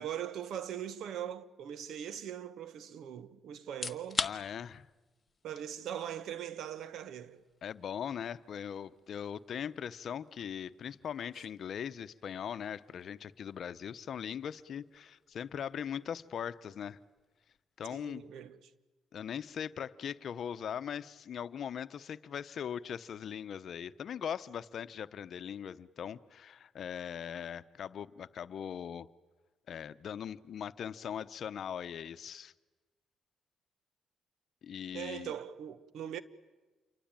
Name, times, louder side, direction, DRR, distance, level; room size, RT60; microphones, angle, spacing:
voice 1, 0.0-4.2 5.4-7.4 17.9-18.7 34.9-36.2, right 10 dB, 75° right, 1.3 m, -41 dB
sound 1, 3.7-18.5, left 4 dB, 25° left, 1.3 m, -47 dB
voice 2, 4.2-4.9 7.6-17.0 17.8-18.2 19.1-29.1 29.7-32.5 34.6-35.3, left 8 dB, 60° left, 0.9 m, -40 dB
28.0 x 24.0 x 9.0 m
cardioid pair, 90°, 0 cm